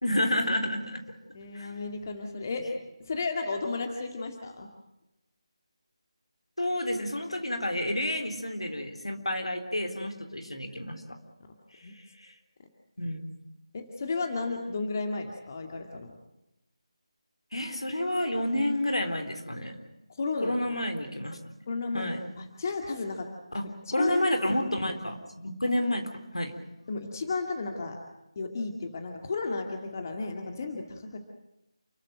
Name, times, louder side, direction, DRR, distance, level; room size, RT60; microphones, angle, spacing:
voice 1, 0.0-1.0 1.5-1.7 6.6-11.0 12.2-12.3 13.0-13.3 17.5-19.7 20.4-21.5 21.9-22.2 23.5-23.7 23.9-26.5, left 1 dB, 75° left, 5 dB, 3.9 m, -30 dB
voice 2, 1.3-2.6 3.1-4.7 11.8-11.9 13.7-16.2 20.2-20.8 21.7-23.3 23.9-24.1 26.9-28.0 28.4-31.2, left 3 dB, 35° left, 3 dB, 2.2 m, -33 dB
29.0 x 14.0 x 9.1 m, 0.92 s
figure-of-eight pair, 160°, 3 cm